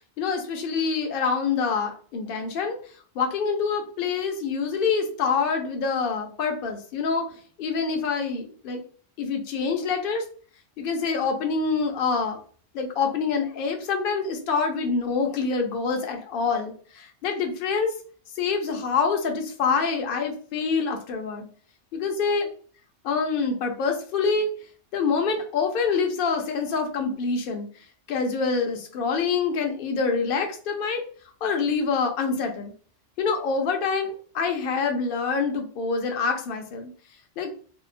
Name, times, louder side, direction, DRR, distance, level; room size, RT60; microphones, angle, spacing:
voice 1, 0.2-2.8 3.2-7.3 7.6-8.8 9.2-10.2 10.8-12.4 12.7-17.9 18.4-21.5 21.9-22.5 23.0-24.5 24.9-27.7 28.1-31.0 31.4-32.7 33.2-36.9 37.4-37.5, left 5 dB, 55° left, 4 dB, 0.7 m, -26 dB
2.8 x 2.0 x 2.5 m, 0.43 s
omnidirectional pair, 1.3 m